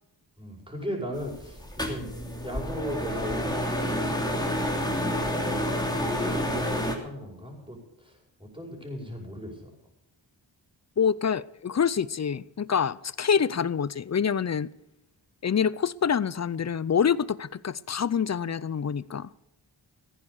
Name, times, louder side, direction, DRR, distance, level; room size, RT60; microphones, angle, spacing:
voice 1, 0.4-2.1 2.4-4.2 5.2-5.7 5.9-9.7, equal, 10° right, 5.6 m, -37 dB
sound 1, 1.2-7.0, equal, 10° left, 3.0 m, -29 dB
voice 2, 11.0-14.7 15.4-19.4, left 7 dB, 35° left, 0.5 m, -26 dB
15.5 x 10.0 x 6.7 m
cardioid pair, 65°, 46 cm